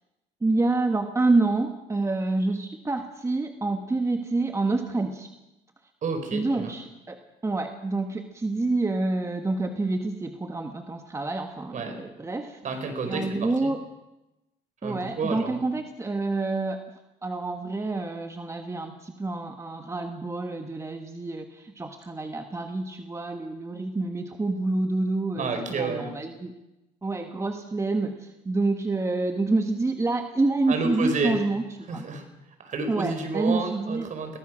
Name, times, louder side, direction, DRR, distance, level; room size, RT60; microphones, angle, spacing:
voice 1, 0.4-5.3 6.3-12.6 13.0-13.8 14.8-16.8 17.2-26.5 27.0-32.0 32.9-34.1, right 3 dB, 15° right, 6 dB, 1.6 m, -28 dB
voice 2, 6.0-6.7 11.7-12.0 12.6-13.7 14.8-15.6 25.4-26.1 30.7-31.4 31.9-32.2 32.6-34.4, right 3 dB, 50° right, 6 dB, 4.9 m, -30 dB
22.5 x 18.5 x 6.4 m, 0.96 s
cardioid pair, 110°, 17 cm